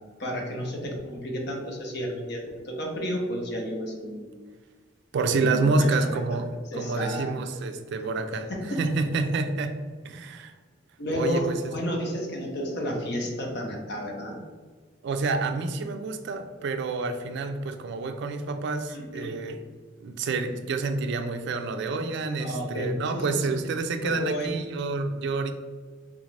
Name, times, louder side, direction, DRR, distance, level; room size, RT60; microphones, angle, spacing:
voice 1, 0.2-4.3 5.3-6.2 6.7-7.3 8.0-8.1 8.5-8.8 11.0-14.4 18.9-19.4 22.4-23.2 24.0-24.5, equal, 60° left, 1 dB, 0.7 m, -31 dB
voice 2, 5.1-8.5 8.8-9.8 10.0-10.5 11.1-11.6 15.0-19.6 20.0-25.5, right 3 dB, 60° right, 7 dB, 0.3 m, -28 dB
3.5 x 2.5 x 3.1 m, 1.5 s
head